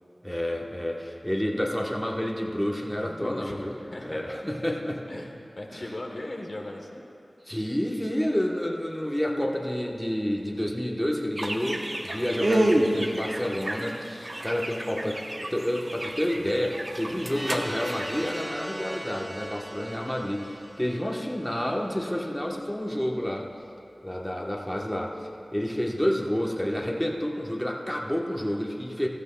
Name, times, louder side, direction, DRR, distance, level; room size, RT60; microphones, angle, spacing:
voice 1, 0.2-3.7 4.0-5.0 5.7-5.8 7.4-23.5 24.0-29.1, equal, 10° left, 0 dB, 1.0 m, -29 dB
voice 2, 3.0-4.2 5.1-7.0 17.0-17.2 20.8-21.0, left 1 dB, 55° left, 1 dB, 1.0 m, -39 dB
sound 1, 11.4-18.4, right 1 dB, 45° right, 0.8 m, -29 dB
sound 2, 17.2-22.1, equal, 10° right, 0.4 m, -39 dB
15.5 x 13.5 x 2.2 m, 2.6 s
wide cardioid pair, 55°, 0 cm